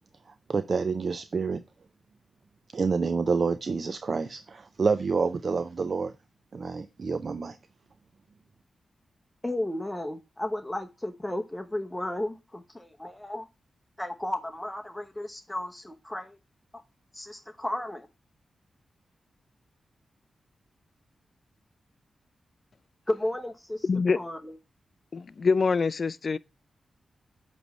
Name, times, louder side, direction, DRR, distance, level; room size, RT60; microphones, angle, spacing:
voice 1, 0.5-1.6 2.7-6.1 6.5-7.6, right 4 dB, 55° right, 0.4 m, -28 dB
voice 2, 9.4-13.5 14.0-16.4 17.1-18.1 23.1-23.8 24.1-24.6, left 1 dB, 15° left, 0.8 m, -33 dB
voice 3, 23.8-24.2 25.1-26.4, left 4 dB, 60° left, 0.3 m, -25 dB
8.0 x 3.1 x 5.3 m
cardioid pair, 50°, 0 cm